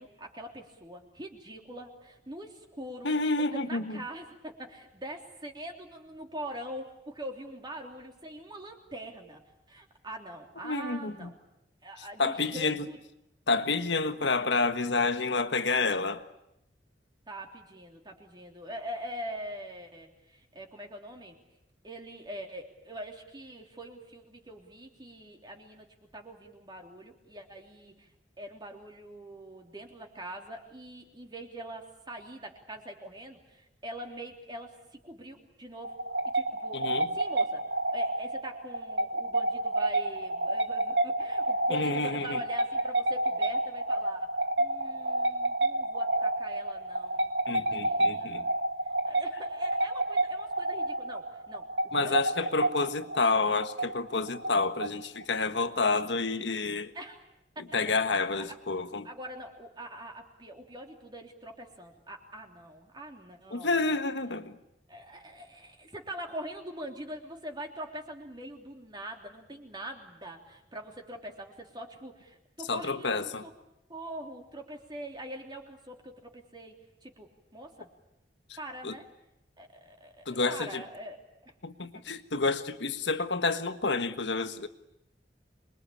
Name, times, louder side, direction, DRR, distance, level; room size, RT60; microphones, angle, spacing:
voice 1, 0.0-9.4 9.7-11.3 11.8-13.0 17.3-21.4 21.8-28.1 28.4-35.9 36.3-36.8 37.1-37.6 37.9-44.3 44.6-48.4 48.8-51.7 51.9-52.5 56.9-57.2 57.5-57.7 57.9-58.6 59.0-63.9 64.9-73.5 73.9-76.8 77.0-77.9 78.6-79.1 79.6-81.2 81.4-81.5 81.9-82.0, equal, 25° right, 2 dB, 3.3 m, -43 dB
voice 2, 3.0-4.0 10.6-11.3 12.2-12.9 13.5-16.2 36.7-37.1 41.7-42.4 47.5-48.5 51.9-56.9 57.7-59.1 63.5-64.6 72.7-73.4 78.8-78.9 80.2-80.8 81.6-84.7, left 3 dB, 85° left, 10 dB, 1.5 m, -29 dB
sound 1, 35.8-55.2, right 1 dB, 80° right, 1.7 m, -30 dB
26.5 x 22.5 x 8.7 m, 0.86 s
head